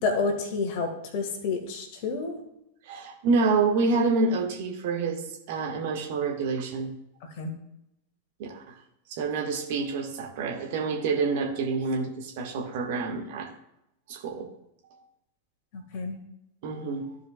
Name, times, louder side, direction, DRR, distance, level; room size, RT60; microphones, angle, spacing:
voice 1, 0.0-2.4 7.4-7.5 15.7-16.2, left 4 dB, 45° left, 5 dB, 1.6 m, -29 dB
voice 2, 2.8-5.2 5.5-6.9 8.4-8.7 9.1-13.5 14.1-14.5 14.9-15.0 16.6-17.2, right 4 dB, 50° right, 1 dB, 1.4 m, -27 dB
14.5 x 4.9 x 2.3 m, 0.83 s
figure-of-eight pair, 90°, 0 cm